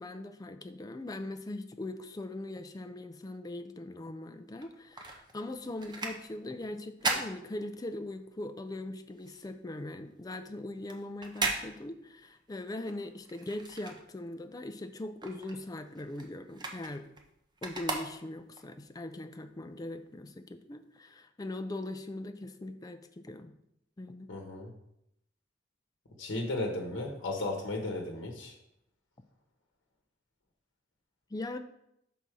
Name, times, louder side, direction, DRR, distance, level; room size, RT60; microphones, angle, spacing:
voice 1, 0.0-17.1 17.6-23.5 24.0-24.3 31.3-31.6, left 2 dB, 20° left, 8 dB, 0.4 m, -41 dB
sound 1, 4.5-8.2 8.6-14.5 14.9-18.6 19.2-19.3, right 3 dB, 25° right, 0.7 m, -38 dB
voice 2, 24.3-24.7 26.2-28.5, left 2 dB, 75° left, 1 dB, 1.0 m, -35 dB
6.0 x 4.1 x 4.7 m, 0.79 s
head